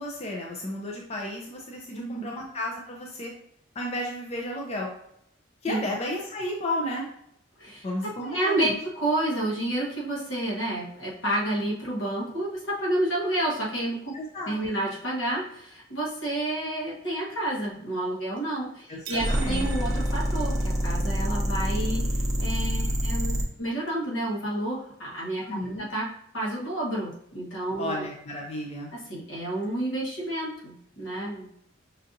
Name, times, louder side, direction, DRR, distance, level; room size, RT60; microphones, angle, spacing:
voice 1, 0.0-3.3 3.7-4.9 5.6-7.1 7.8-8.8 14.1-14.9 18.9-19.6 25.5-25.9 27.8-28.9, left 1 dB, 35° left, -1 dB, 0.5 m, -33 dB
voice 2, 1.9-2.3 5.7-5.8 7.6-7.8 8.2-14.1 14.5-22.1 22.4-26.1 26.3-28.1 28.9-31.5, right 1 dB, 75° left, -4 dB, 1.3 m, -30 dB
sound 1, 19.0-21.2, right 8 dB, 70° right, 0.6 m, -42 dB
sound 2, 19.1-23.5, equal, 20° right, 0.7 m, -26 dB
5.5 x 2.5 x 2.6 m, 0.72 s
head